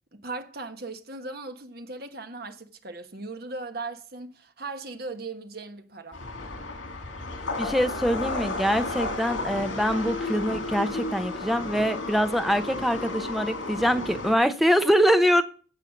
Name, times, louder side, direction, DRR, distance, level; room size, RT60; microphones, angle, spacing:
voice 1, 0.1-6.2, right 3 dB, 50° right, 1.4 m, -38 dB
sound 1, 6.1-14.3, left 2 dB, 85° left, 2.6 m, -33 dB
voice 2, 7.6-15.4, equal, ahead, 0.8 m, -24 dB
16.0 x 5.6 x 6.5 m
head